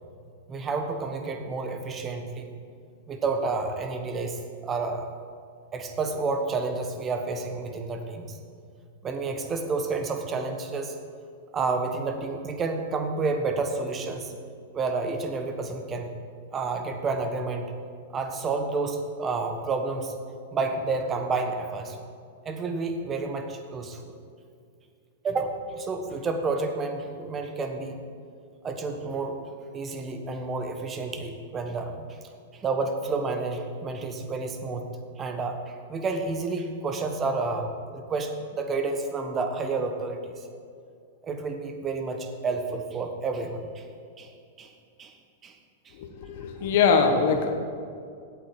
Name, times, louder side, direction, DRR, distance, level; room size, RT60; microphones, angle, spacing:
voice 1, 0.5-2.5 3.1-5.1 5.7-8.4 9.0-10.9 11.5-14.3 14.7-16.1 16.5-17.6 18.1-20.1 20.5-22.0 22.4-24.1 25.2-28.0 28.6-29.4 29.7-32.2 32.5-34.8 35.2-40.5 41.2-43.8 44.2-44.3 44.6-44.7 45.0-45.2 45.4-45.6 45.8-45.9, right 3 dB, 25° right, 5 dB, 1.3 m, -30 dB
voice 2, 46.0-47.5, left 5 dB, 60° left, 4 dB, 1.5 m, -22 dB
8.4 x 8.2 x 8.1 m, 2.3 s
hypercardioid pair, 115°, 0 cm